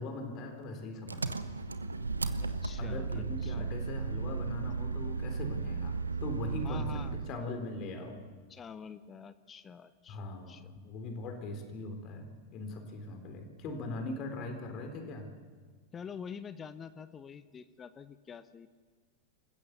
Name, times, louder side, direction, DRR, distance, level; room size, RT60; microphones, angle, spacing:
voice 1, 0.0-1.4 2.8-8.2 10.1-15.3, left 2 dB, 35° left, 5 dB, 3.8 m, -40 dB
Engine, 1.1-7.4, right 4 dB, 80° right, 1.0 m, -35 dB
voice 2, 2.4-3.7 6.6-7.2 8.5-10.7 15.9-18.7, left 6 dB, 20° left, 13 dB, 0.8 m, -47 dB
27.5 x 15.5 x 6.9 m, 1.5 s
figure-of-eight pair, 90°, 0 cm